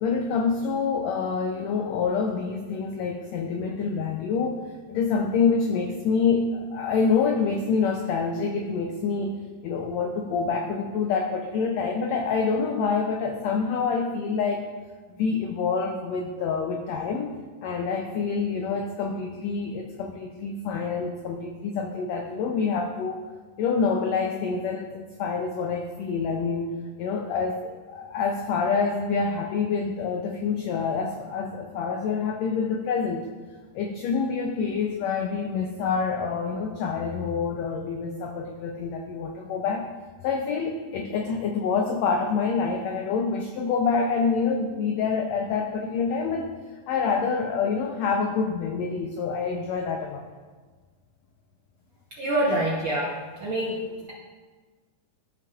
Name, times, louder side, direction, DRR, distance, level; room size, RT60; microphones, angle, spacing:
voice 1, 0.0-4.6 4.9-14.7 15.1-23.2 23.6-26.7 27.0-33.3 33.7-39.9 40.2-46.5 46.9-50.2, left 5 dB, 85° left, 3 dB, 1.5 m, -27 dB
voice 2, 52.2-53.1 53.4-54.1, right 1 dB, 70° right, -5 dB, 1.2 m, -26 dB
13.0 x 5.7 x 2.4 m, 1.4 s
omnidirectional pair, 3.7 m